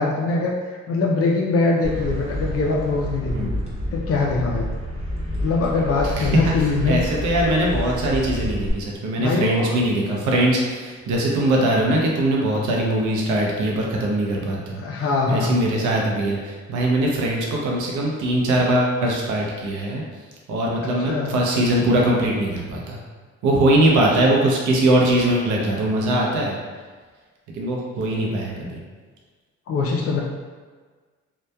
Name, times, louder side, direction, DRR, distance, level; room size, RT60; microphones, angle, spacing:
voice 1, 0.0-3.5 3.9-4.7 5.4-7.0 9.2-9.7 14.8-15.6 20.8-21.3 29.7-30.2, left 3 dB, 50° left, -2 dB, 0.4 m, -22 dB
sound 1, 1.8-8.7, left 1 dB, 20° right, 0.7 m, -29 dB
voice 2, 3.3-3.6 6.2-6.5 6.9-14.8 15.3-20.0 20.5-23.0 23.4-26.6 27.5-28.8, right 1 dB, 80° right, -2 dB, 0.6 m, -21 dB
2.7 x 2.2 x 2.2 m, 1.5 s
cardioid pair, 90°, 30 cm